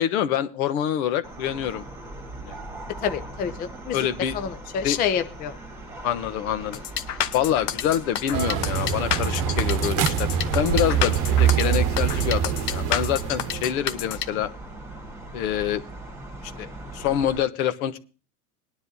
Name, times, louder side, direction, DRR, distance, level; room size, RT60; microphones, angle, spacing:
voice 1, 0.0-1.8 2.4-2.6 3.9-4.4 4.8-5.0 6.0-6.8 7.3-10.3 10.5-14.5 15.3-15.8 16.6-16.7 16.9-18.0, left 10 dB, 65° left, 11 dB, 1.1 m, -26 dB
sound 1, 1.2-17.4, right 2 dB, 5° right, 1.8 m, -39 dB
voice 2, 3.0-4.0 4.3-5.5, left 8 dB, 20° left, 9 dB, 0.5 m, -28 dB
sound 2, 6.7-14.3, left 11 dB, 80° left, 1.2 m, -29 dB
sound 3, 8.3-13.7, right 8 dB, 40° right, 1.0 m, -24 dB
21.0 x 10.0 x 2.7 m, 0.35 s
supercardioid pair, 130°, 47 cm